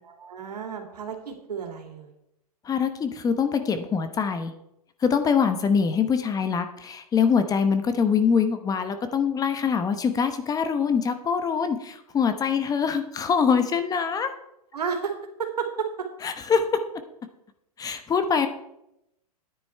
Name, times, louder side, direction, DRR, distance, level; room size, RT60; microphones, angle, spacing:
voice 1, 0.0-2.1 14.7-15.1 15.4-16.1, right 6 dB, 85° right, 3 dB, 2.7 m, -32 dB
voice 2, 2.6-4.5 5.0-14.3 16.2-16.8 17.8-18.5, left 6 dB, 20° left, 9 dB, 1.0 m, -24 dB
10.5 x 9.7 x 4.5 m, 0.82 s
hypercardioid pair, 125°, 20 cm